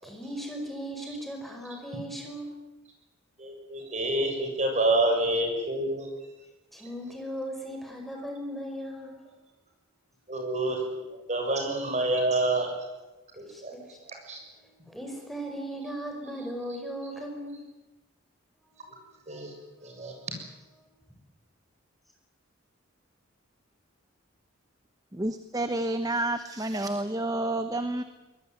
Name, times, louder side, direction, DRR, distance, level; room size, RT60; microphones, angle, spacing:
voice 1, 0.0-2.5 6.7-9.2 13.5-14.0 14.4-17.6 18.6-19.0 19.8-20.3 20.8-20.9, right 1 dB, ahead, 2 dB, 5.0 m, -38 dB
voice 2, 3.4-6.1 10.3-12.7 13.4-13.7 14.3-14.4 19.3-19.5 19.8-20.1, right 2 dB, 35° right, 3 dB, 7.0 m, -27 dB
voice 3, 25.1-28.0, right 1 dB, 20° right, 9 dB, 1.0 m, -29 dB
23.5 x 20.5 x 9.4 m, 1.1 s
head